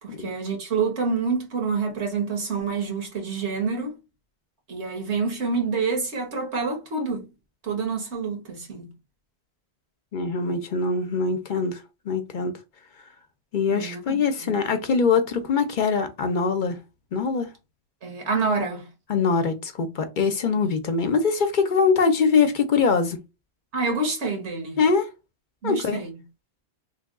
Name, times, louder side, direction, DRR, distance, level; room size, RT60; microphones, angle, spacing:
voice 1, 0.0-4.0 4.7-7.3 7.6-8.9 13.7-14.5 18.0-18.9 23.7-24.8 25.6-26.1, right 4 dB, 85° right, 1.5 m, -27 dB
voice 2, 10.1-11.8 12.1-12.5 13.5-16.8 17.1-17.5 19.1-23.2 24.8-25.1 25.6-26.0, left 5 dB, 55° left, 0.7 m, -23 dB
3.3 x 2.2 x 3.6 m
omnidirectional pair, 1.1 m